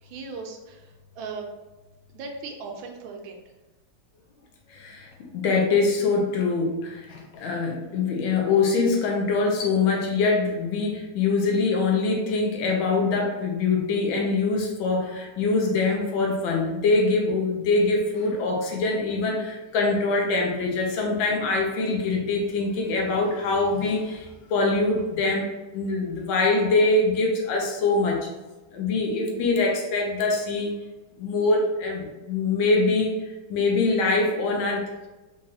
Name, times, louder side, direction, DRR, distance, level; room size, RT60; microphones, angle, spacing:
voice 1, 0.0-1.5 2.1-3.4, right 4 dB, 85° right, 3 dB, 1.4 m, -38 dB
voice 2, 4.7-25.5 25.7-28.3 28.7-30.7 31.2-33.1 33.5-34.8, left 3 dB, 80° left, 1 dB, 1.5 m, -24 dB
4.6 x 2.4 x 2.7 m, 1.1 s
omnidirectional pair, 2.2 m